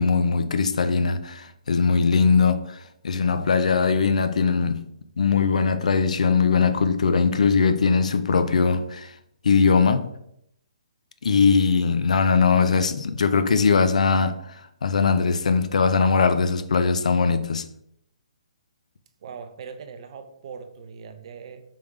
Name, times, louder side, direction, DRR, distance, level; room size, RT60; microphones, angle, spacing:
voice 1, 0.0-4.9 5.2-9.1 9.4-10.1 11.2-17.6, left 5 dB, 75° left, 0.4 m, -21 dB
voice 2, 19.2-21.6, right 6 dB, 50° right, 0.5 m, -40 dB
3.5 x 3.5 x 3.1 m
hypercardioid pair, 140°, 4 cm